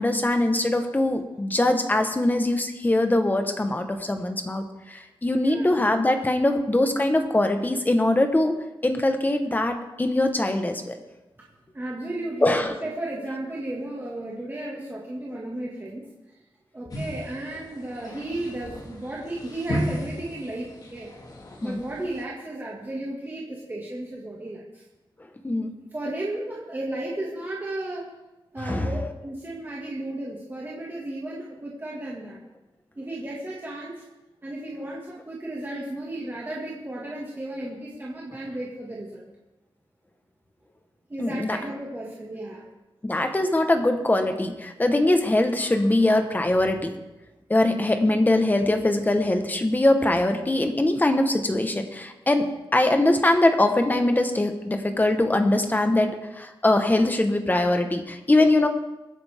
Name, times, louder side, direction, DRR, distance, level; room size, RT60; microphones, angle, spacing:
voice 1, 0.0-8.6 8.8-11.0 12.4-12.8 21.6-21.8 25.4-25.7 28.6-28.9 41.2-41.6 43.0-46.9 47.5-58.7, left 1 dB, 20° left, 6 dB, 1.2 m, -22 dB
voice 2, 5.3-5.7 11.7-16.4 16.7-21.1 21.6-24.8 25.9-28.1 28.5-32.4 33.0-34.0 34.4-39.3 41.1-42.6, right 1 dB, 20° right, -4 dB, 2.0 m, -34 dB
sound 1, 16.9-22.2, equal, 40° left, 1.9 m, -35 dB
23.5 x 10.0 x 3.6 m, 1.0 s
wide cardioid pair, 175°, 10 cm